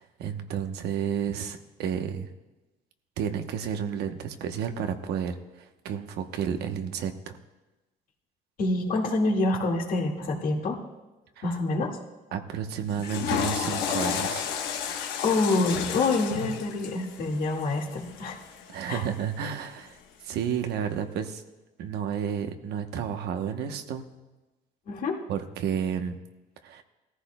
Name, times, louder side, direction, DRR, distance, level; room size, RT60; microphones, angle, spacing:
voice 1, 0.0-2.3 3.2-7.4 11.4-11.5 12.3-14.5 18.7-20.0 20.2-21.4 21.8-24.1 25.3-26.2 26.6-26.8, right 8 dB, 75° right, 7 dB, 1.0 m, -31 dB
voice 2, 8.6-10.8 11.4-12.0 15.2-18.4 18.9-19.0 24.9-25.2, left 2 dB, 55° left, 1 dB, 2.0 m, -26 dB
Water / Toilet flush, 12.9-19.1, left 7 dB, 85° left, 1.2 m, -32 dB
17.5 x 14.5 x 2.3 m, 1.1 s
cardioid pair, 110°, 17 cm